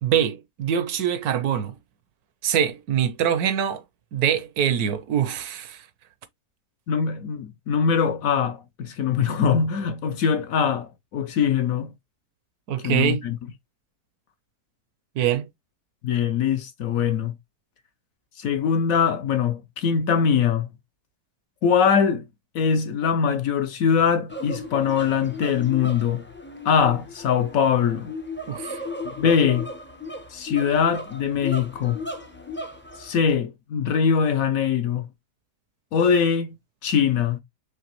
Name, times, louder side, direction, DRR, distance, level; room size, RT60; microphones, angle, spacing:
voice 1, 0.0-1.7 2.4-3.8 4.1-5.8 12.7-13.2 15.2-15.5 28.5-28.8, right 9 dB, 70° right, 1.1 m, -24 dB
voice 2, 6.9-11.9 12.8-13.4 16.0-17.3 18.4-20.7 21.6-22.2 22.5-26.2 26.6-28.1 29.2-29.7 30.3-32.0 33.0-35.1 35.9-36.6 36.8-37.4, left 7 dB, 65° left, 1.0 m, -22 dB
sound 1, 24.3-33.4, left 2 dB, 20° left, 0.3 m, -36 dB
5.1 x 3.2 x 2.9 m
omnidirectional pair, 1.8 m